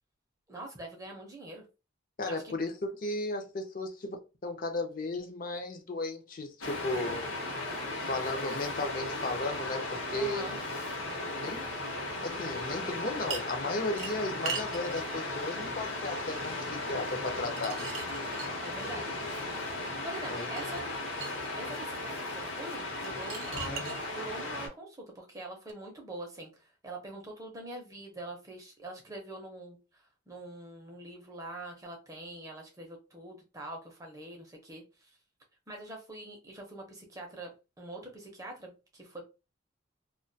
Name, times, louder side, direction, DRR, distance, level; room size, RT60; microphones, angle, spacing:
voice 1, 0.5-1.6 2.3-2.5 10.1-10.6 18.6-19.2 20.0-20.8 21.6-23.8 24.1-35.1 35.7-39.2, right 2 dB, 15° right, 0.5 m, -44 dB
voice 2, 2.2-4.2 4.4-7.2 8.1-10.5 11.4-11.7 12.2-17.8 20.3-20.5 23.5-23.8, left 2 dB, 45° left, 0.5 m, -35 dB
Waves surf, 6.6-24.7, left 2 dB, 75° left, 0.8 m, -36 dB
sound 1, 13.3-13.6 14.0-15.1 17.4-19.0 20.4-21.5 23.0-24.0 25.7-25.8, right 5 dB, 90° right, 0.5 m, -40 dB
2.2 x 2.2 x 2.5 m
head